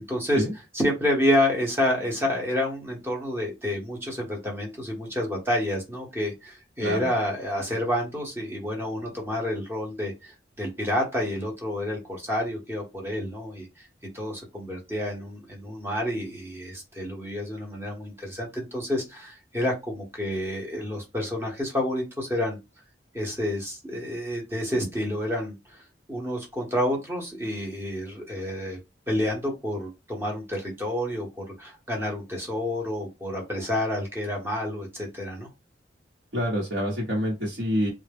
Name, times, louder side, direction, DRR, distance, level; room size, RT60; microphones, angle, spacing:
voice 1, 0.1-0.4 0.7-13.9 14.1-22.6 23.1-25.8 26.1-28.8 29.1-35.5, left 1 dB, 15° right, -2 dB, 0.8 m, -29 dB
voice 2, 36.3-37.9, equal, 75° right, -6 dB, 1.1 m, -26 dB
2.2 x 2.0 x 3.3 m, 0.25 s
head